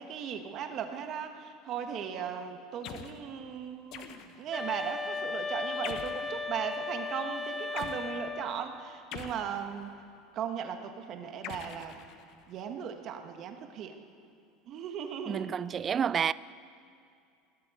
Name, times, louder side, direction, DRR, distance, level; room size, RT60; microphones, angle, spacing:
voice 1, 0.0-10.0 10.3-12.0 12.5-14.0 14.7-15.5, right 8 dB, 45° right, 1.4 m, -37 dB
sound 1, 2.8-3.2 3.9-4.5 5.8-6.3 7.8-8.0 9.1-10.0 11.4-12.5, left 8 dB, 55° left, 1.0 m, -43 dB
sound 2, 4.5-8.7, left 4 dB, 5° left, 0.7 m, -36 dB
voice 2, 15.3-16.3, right 7 dB, 25° right, 0.3 m, -29 dB
20.0 x 8.5 x 8.2 m
supercardioid pair, 140°, 0 cm